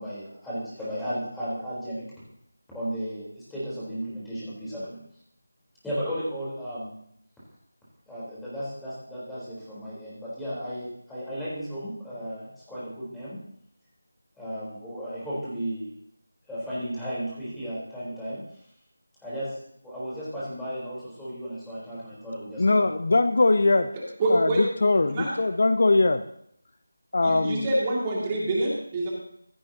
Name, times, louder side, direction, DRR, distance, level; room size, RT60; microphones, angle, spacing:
voice 1, 0.0-2.1 2.7-5.0 5.8-6.9 8.1-13.4 14.4-15.9 16.5-18.4 19.2-19.6 19.8-22.9, equal, 5° left, -11 dB, 4.0 m, -34 dB
voice 2, 22.6-23.9 24.3-26.2 27.1-27.7, left 2 dB, 50° left, 11 dB, 0.6 m, -21 dB
voice 3, 24.2-24.6 25.1-25.3 27.2-29.1, right 1 dB, 20° right, -3 dB, 2.4 m, -26 dB
16.0 x 12.5 x 2.9 m, 0.71 s
figure-of-eight pair, 165°, 0 cm